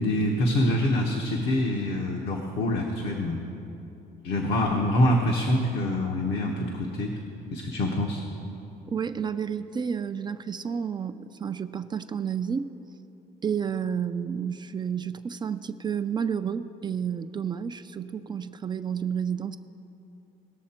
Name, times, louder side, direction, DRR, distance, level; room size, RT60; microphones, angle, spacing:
voice 1, 0.0-3.4 4.2-7.1 7.5-8.2, left 1 dB, 75° left, 0 dB, 1.2 m, -25 dB
voice 2, 8.9-12.7 13.4-19.6, right 7 dB, 25° right, 10 dB, 0.4 m, -31 dB
19.0 x 6.7 x 4.4 m, 2.9 s
cardioid pair, 110°, 17 cm